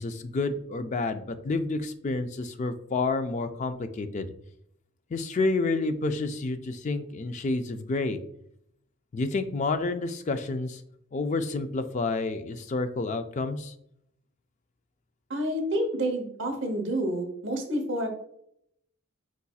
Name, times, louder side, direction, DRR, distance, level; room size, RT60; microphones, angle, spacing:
voice 1, 0.0-4.3 5.1-8.2 9.1-10.8 11.1-13.7, left 3 dB, 35° left, 10 dB, 0.3 m, -29 dB
voice 2, 15.3-18.1, right 1 dB, 55° right, 4 dB, 0.9 m, -29 dB
4.8 x 4.1 x 2.3 m, 0.71 s
head